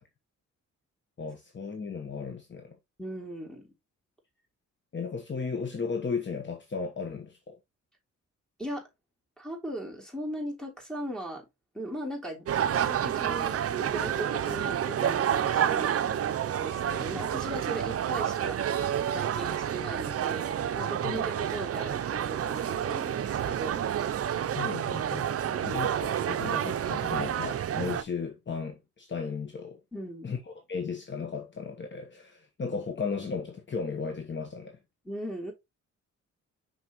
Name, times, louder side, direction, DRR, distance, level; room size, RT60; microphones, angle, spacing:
voice 1, 1.2-2.8 4.9-7.6 21.0-21.2 24.4-25.3 25.6-29.8 30.2-34.8, left 5 dB, 40° left, 1.2 m, -35 dB
voice 2, 3.0-3.7 8.6-8.9 9.4-11.5 11.7-16.2 16.6-18.6 19.1-23.8 29.9-30.3 35.0-35.5, right 1 dB, ahead, 3.3 m, -38 dB
sound 1, 12.5-28.0, right 9 dB, 50° right, 0.6 m, -29 dB
6.0 x 5.8 x 3.0 m
cardioid pair, 95°, 30 cm